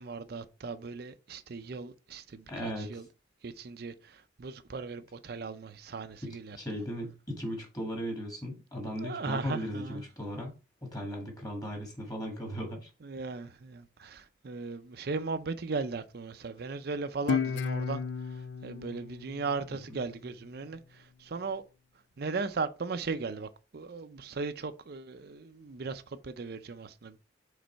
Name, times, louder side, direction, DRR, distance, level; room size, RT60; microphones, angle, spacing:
voice 1, 0.0-3.0 3.4-6.6 9.0-10.0 13.0-18.0 18.3-21.6 22.2-27.2, right 4 dB, 55° right, 0.5 m, -37 dB
voice 2, 2.5-3.0 6.2-10.5 10.8-12.9 19.9-20.0, equal, 20° left, 1.8 m, -37 dB
Guitar, 17.3-20.5, left 6 dB, 70° left, 0.4 m, -34 dB
5.2 x 4.0 x 4.5 m
head